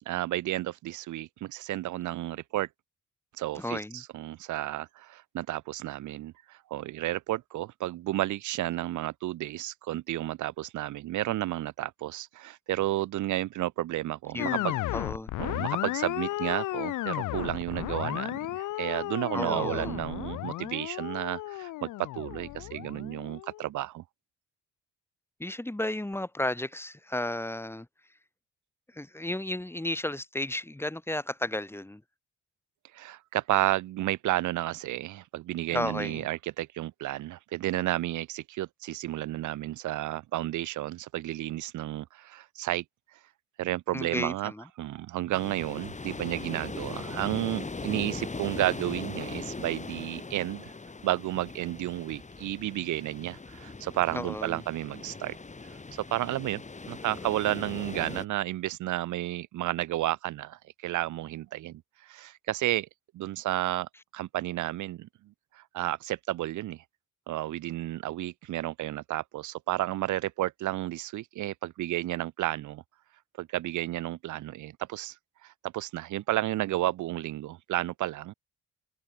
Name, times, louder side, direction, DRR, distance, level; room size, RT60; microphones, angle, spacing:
voice 1, 0.1-2.7 3.4-14.8 15.4-24.0 32.9-42.8 43.6-44.5 44.8-50.7 51.0-55.4 55.9-62.9 63.1-65.1 65.5-66.8 67.3-72.8 73.4-75.2 75.4-78.3, right 15 dB, 75° right, 0.9 m, -32 dB
voice 2, 3.6-4.0 14.3-14.7 14.9-15.3 19.3-20.0 25.4-27.9 28.9-32.0 35.7-36.3 43.9-44.6 54.1-54.6, left 1 dB, 10° left, 2.4 m, -33 dB
sound 1, 14.4-23.7, left 16 dB, 85° left, 1.8 m, -34 dB
sound 2, 45.3-58.2, left 3 dB, 25° left, 4.1 m, -40 dB
cardioid pair, 90°, 30 cm